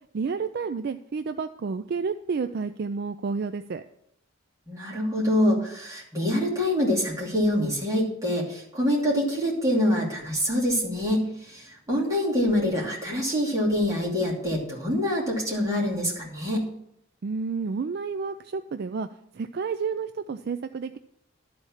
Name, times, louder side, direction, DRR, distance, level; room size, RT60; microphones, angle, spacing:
voice 1, 0.1-3.8 17.2-19.1 19.3-21.0, right 5 dB, 50° right, 9 dB, 0.4 m, -30 dB
voice 2, 4.7-16.7, left 1 dB, 15° right, -5 dB, 2.7 m, -25 dB
12.0 x 4.3 x 7.1 m, 0.75 s
head